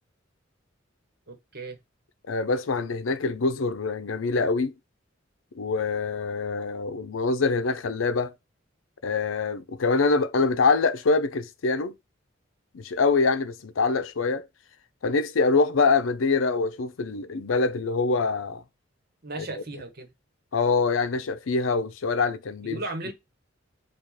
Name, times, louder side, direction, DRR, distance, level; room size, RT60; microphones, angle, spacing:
voice 1, 1.3-1.8 19.2-20.1 22.6-23.1, right 2 dB, 50° right, 1.1 m, -35 dB
voice 2, 2.3-4.7 5.5-8.3 9.0-11.9 12.7-14.5 15.0-18.6 19.4-19.5 20.5-22.8, left 4 dB, 85° left, 0.6 m, -24 dB
4.9 x 2.4 x 4.1 m
head